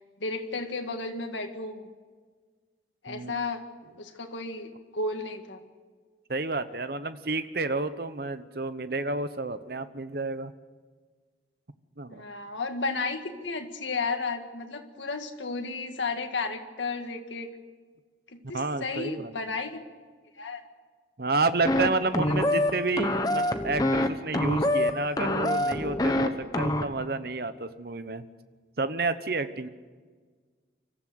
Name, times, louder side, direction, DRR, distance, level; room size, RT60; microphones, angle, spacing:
voice 1, 0.2-1.9 3.0-3.7 4.0-5.6 12.1-17.5 18.3-19.8 20.4-20.7 22.2-22.5, left 3 dB, 90° left, 5 dB, 1.9 m, -33 dB
voice 2, 3.1-3.5 6.3-10.5 12.0-12.2 18.4-19.3 21.2-28.2 28.8-29.7, right 3 dB, 55° right, 12 dB, 1.0 m, -30 dB
sound 1, 21.6-21.9 22.1-22.7 23.0-24.1 24.3-24.9 25.2-26.3 26.5-26.8, left 1 dB, 20° left, 1.1 m, -25 dB
25.0 x 14.5 x 7.8 m, 1.5 s
head